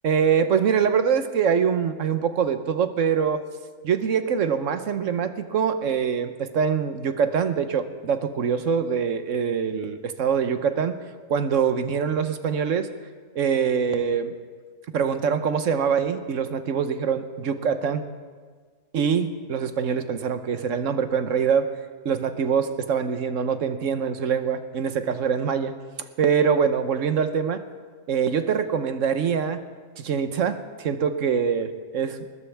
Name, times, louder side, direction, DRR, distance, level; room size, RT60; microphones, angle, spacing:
voice 1, 0.0-3.4 3.8-11.0 11.3-12.9 13.3-14.3 14.9-18.1 18.9-21.8 22.0-25.7 26.2-27.6 28.1-29.6 30.0-32.3, right 7 dB, 70° right, 10 dB, 1.3 m, -24 dB
20.5 x 20.0 x 3.5 m, 1.5 s
omnidirectional pair, 1.4 m